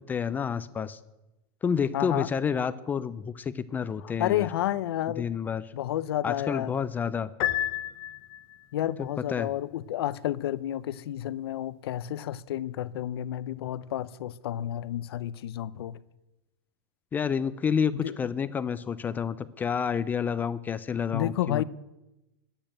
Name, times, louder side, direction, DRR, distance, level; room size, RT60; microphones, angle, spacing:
voice 1, 0.1-1.0 1.6-4.5 5.2-5.6 6.2-7.3 9.0-9.5 17.1-21.6, left 7 dB, 15° left, 0.4 m, -29 dB
voice 2, 1.9-2.3 4.0-5.3 5.7-6.8 8.7-16.0 17.9-18.2 21.1-21.6, left 12 dB, 80° left, 0.6 m, -31 dB
Piano, 7.4-8.6, left 13 dB, 35° left, 0.9 m, -30 dB
10.0 x 8.9 x 8.7 m
supercardioid pair, 150°, 13 cm